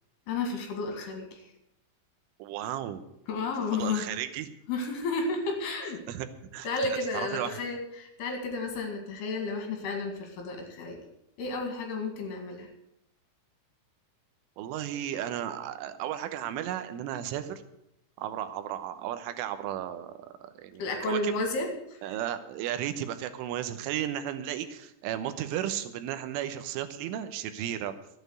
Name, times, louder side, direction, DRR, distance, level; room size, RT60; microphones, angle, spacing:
voice 1, 0.3-1.4 3.3-4.0 4.7-6.0 6.6-11.0 11.4-12.7 20.8-22.2, left 3 dB, 60° left, 3 dB, 4.0 m, -32 dB
voice 2, 2.4-3.0 3.6-4.5 6.1-6.3 6.5-6.7 7.1-7.6 14.6-17.6 18.2-20.1 20.5-21.3 22.0-27.9, right 11 dB, 85° right, 10 dB, 3.5 m, -34 dB
13.0 x 8.7 x 8.0 m, 0.80 s
omnidirectional pair, 5.5 m